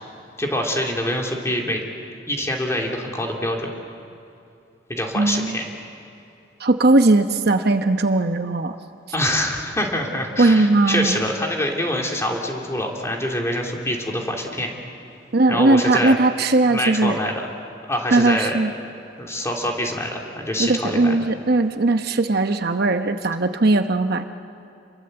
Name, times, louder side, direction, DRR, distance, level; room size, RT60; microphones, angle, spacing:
voice 1, 0.4-1.8 2.3-3.7 4.9-5.6 9.1-14.7 15.5-16.2 16.7-17.5 17.9-18.6 19.2-21.1, left 1 dB, 15° left, 0 dB, 3.1 m, -25 dB
voice 2, 5.1-5.6 6.6-8.8 10.4-11.1 15.3-17.2 18.1-18.7 20.6-24.3, right 2 dB, 60° right, 7 dB, 1.0 m, -18 dB
28.5 x 22.5 x 7.9 m, 2.6 s
head